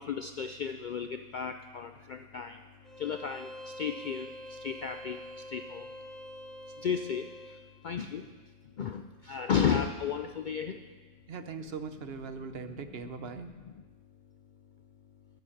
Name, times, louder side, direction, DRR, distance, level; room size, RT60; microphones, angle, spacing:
voice 1, 0.0-2.6 3.0-5.9 6.8-8.3 8.6-10.9 12.6-12.9 13.6-13.7, left 7 dB, 60° left, 8 dB, 0.5 m, -34 dB
Bowed string instrument, 2.8-7.7, equal, ahead, 0.8 m, -46 dB
voice 2, 11.3-13.5, right 5 dB, 60° right, 9 dB, 0.9 m, -40 dB
11.5 x 9.3 x 7.2 m, 1.3 s
omnidirectional pair, 1.3 m